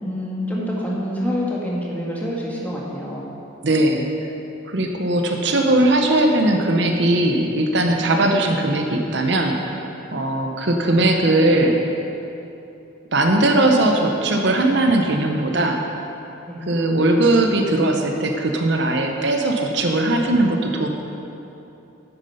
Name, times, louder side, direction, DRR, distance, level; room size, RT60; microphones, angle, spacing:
voice 1, 0.0-3.2 16.5-16.6, equal, 10° left, -4 dB, 1.6 m, -26 dB
voice 2, 3.6-4.1 4.6-11.8 13.1-15.8 16.7-20.9, right 1 dB, 60° right, 3 dB, 0.8 m, -19 dB
9.3 x 9.0 x 5.5 m, 2.9 s
head